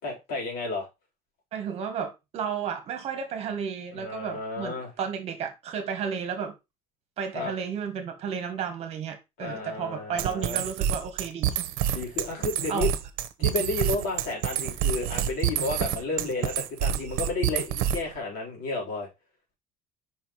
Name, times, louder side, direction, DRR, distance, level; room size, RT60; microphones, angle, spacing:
voice 1, 0.0-0.9 3.9-4.9 7.3-7.5 9.4-10.6 11.9-12.9 13.4-19.1, left 3 dB, 70° left, 3.6 m, -32 dB
voice 2, 1.5-6.5 7.2-11.6 11.8-12.0 12.7-12.9 13.4-13.5 16.2-16.3 16.9-17.0, right 7 dB, 45° right, 1.4 m, -33 dB
sound 1, 10.2-18.2, right 10 dB, 80° right, 0.8 m, -27 dB
5.5 x 4.5 x 4.2 m
cardioid pair, 170°, 15 cm